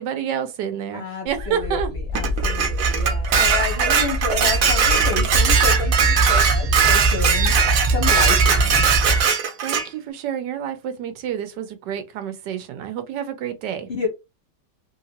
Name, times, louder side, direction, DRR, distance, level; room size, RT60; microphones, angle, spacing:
voice 1, 0.0-1.9 9.6-13.9, right 9 dB, 75° right, 1.3 m, -28 dB
voice 2, 0.9-7.5 7.9-8.8 13.9-14.1, left 4 dB, 50° left, 0.9 m, -30 dB
sound 1, 1.3-9.2, right 1 dB, 25° right, 0.7 m, -23 dB
Dishes pots and pans, 2.1-9.9, right 6 dB, 60° right, 1.0 m, -20 dB
3.2 x 2.9 x 2.8 m
omnidirectional pair, 1.9 m